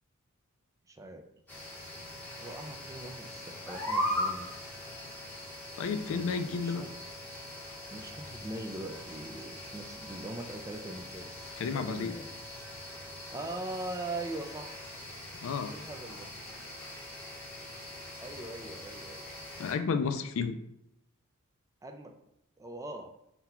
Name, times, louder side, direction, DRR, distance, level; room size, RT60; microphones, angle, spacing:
voice 1, 0.9-1.2 2.4-4.5 6.1-6.9 7.3-7.4 7.9-11.3 11.7-12.3 13.3-15.1 15.7-16.3 18.2-19.2 21.8-22.1 22.6-23.1, right 2 dB, 15° right, 4 dB, 0.3 m, -41 dB
sound 1, 1.5-19.7, left 1 dB, 10° left, 0.9 m, -41 dB
voice 2, 5.8-6.8 11.6-12.2 15.4-15.7 19.6-20.6, left 5 dB, 65° left, 9 dB, 0.3 m, -32 dB
3.9 x 2.2 x 4.2 m, 0.81 s
head